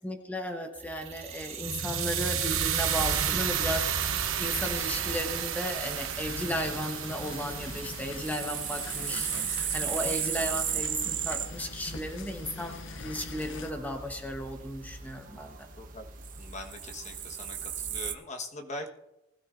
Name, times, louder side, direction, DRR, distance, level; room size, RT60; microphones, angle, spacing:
voice 1, 0.0-15.7, equal, 10° left, 3 dB, 1.0 m, -35 dB
sound 1, 0.8-10.9, right 8 dB, 85° right, 1.0 m, -33 dB
sound 2, 2.0-18.1, right 9 dB, 40° right, 0.9 m, -37 dB
sound 3, 6.2-13.7, left 5 dB, 65° left, 0.6 m, -43 dB
voice 2, 16.4-18.9, left 2 dB, 35° left, 4 dB, 1.2 m, -41 dB
20.0 x 13.0 x 2.5 m, 0.91 s
head